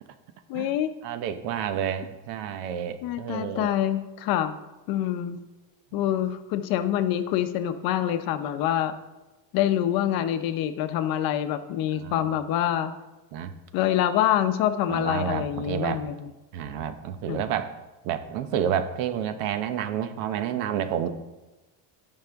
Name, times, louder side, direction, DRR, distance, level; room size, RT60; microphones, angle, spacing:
voice 1, 0.5-0.9 3.0-4.5 4.9-5.4 5.9-8.9 9.5-12.9 13.7-16.3 17.3-17.4, left 11 dB, 50° left, 10 dB, 0.6 m, -26 dB
voice 2, 1.0-3.8 5.9-6.0 12.0-12.2 13.3-13.5 14.9-16.0 16.5-17.7 18.0-21.1, right 9 dB, 90° right, 10 dB, 1.0 m, -30 dB
16.0 x 5.6 x 3.5 m, 1.1 s
cardioid pair, 170°, 46 cm